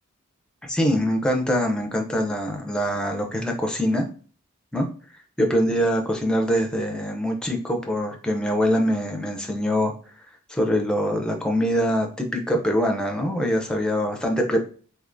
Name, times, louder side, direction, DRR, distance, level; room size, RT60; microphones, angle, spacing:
voice 1, 0.7-4.1 4.7-4.9 5.4-9.9 10.5-14.6, equal, 5° left, 3 dB, 0.5 m, -23 dB
3.5 x 2.8 x 2.5 m, 0.40 s
head